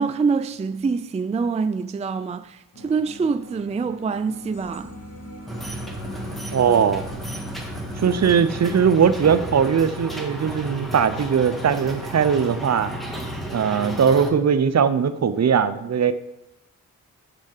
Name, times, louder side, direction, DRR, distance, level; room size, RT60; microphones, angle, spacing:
voice 1, 0.0-4.9, right 5 dB, 20° right, 0.4 m, -25 dB
sound 1, 2.7-8.9, left 1 dB, 45° left, 3.0 m, -39 dB
sound 2, 5.5-14.3, right 1 dB, ahead, 1.7 m, -33 dB
voice 2, 6.5-7.1 8.0-12.9 13.5-16.1, right 7 dB, 50° right, 0.7 m, -20 dB
6.5 x 6.1 x 6.6 m
cardioid pair, 60°, 33 cm